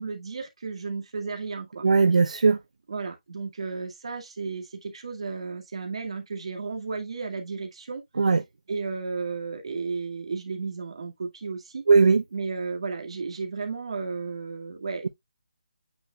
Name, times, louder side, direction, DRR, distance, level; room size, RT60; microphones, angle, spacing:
voice 1, 0.0-1.9 2.9-8.0 8.7-11.9 12.3-15.1, right 4 dB, 50° right, 2.1 m, -33 dB
voice 2, 1.8-2.6 8.2-8.4 11.9-12.2, right 4 dB, 70° right, 0.9 m, -18 dB
8.8 x 4.6 x 2.3 m
hypercardioid pair, 175°, 4 cm